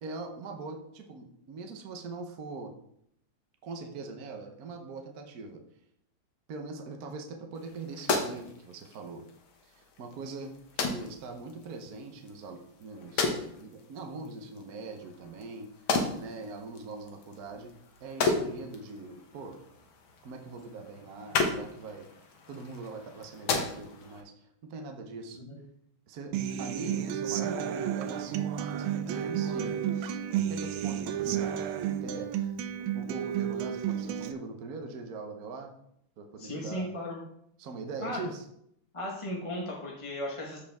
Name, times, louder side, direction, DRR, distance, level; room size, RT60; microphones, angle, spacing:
voice 1, 0.0-2.7 3.6-5.6 6.5-9.2 9.6-13.3 13.6-15.7 16.2-17.7 18.0-19.6 20.2-22.1 22.5-25.4 26.1-29.9 30.5-32.5 32.9-35.7 36.2-36.9 37.6-38.4, right 3 dB, 55° right, 4 dB, 1.2 m, -42 dB
sound 1, 7.5-24.2, left 4 dB, 70° left, 1.9 m, -35 dB
Human voice / Acoustic guitar, 26.3-34.3, right 9 dB, 75° right, 1.4 m, -32 dB
voice 2, 36.4-37.2 38.0-38.2 38.9-40.6, left 1 dB, 20° left, -2 dB, 1.0 m, -36 dB
13.5 x 4.8 x 3.5 m, 0.73 s
omnidirectional pair, 2.3 m